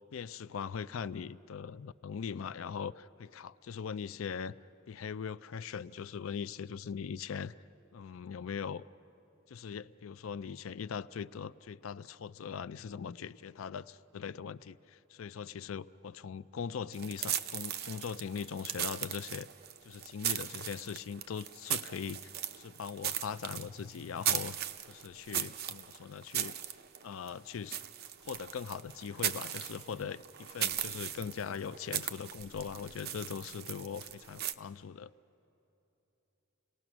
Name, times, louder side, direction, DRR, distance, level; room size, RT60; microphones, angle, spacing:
voice 1, 0.1-4.6 4.9-7.5 7.9-8.8 9.5-19.5 19.8-22.3 22.6-24.6 24.9-26.6 27.0-27.8 28.2-35.1, left 6 dB, 85° left, 16 dB, 0.4 m, -40 dB
sound 1, 16.9-34.5, right 10 dB, 50° right, 0.7 m, -38 dB
29.5 x 19.0 x 6.1 m, 3.0 s
head